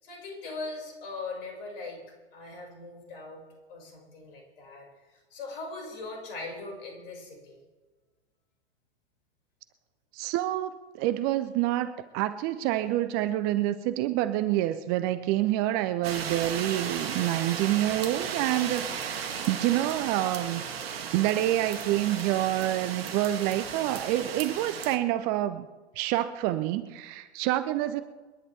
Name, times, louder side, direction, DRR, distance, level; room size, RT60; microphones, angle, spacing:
voice 1, 0.0-2.0 2.3-3.4 3.7-7.6, left 3 dB, 55° left, 0 dB, 5.7 m, -40 dB
voice 2, 10.1-20.6 21.1-25.7 26.0-28.0, right 14 dB, 30° right, 13 dB, 0.6 m, -27 dB
sound 1, 16.0-25.0, right 7 dB, 60° right, 1.5 m, -35 dB
28.5 x 11.0 x 3.4 m, 1.3 s
figure-of-eight pair, 100°, 34 cm